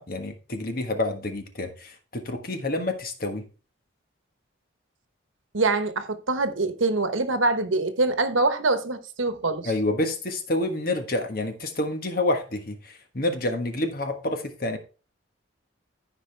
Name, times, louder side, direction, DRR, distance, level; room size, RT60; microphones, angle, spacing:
voice 1, 0.0-3.5 9.6-14.8, left 2 dB, 45° left, 1.4 m, -28 dB
voice 2, 5.5-9.7, right 3 dB, 75° right, 1.1 m, -24 dB
14.0 x 5.0 x 3.3 m
head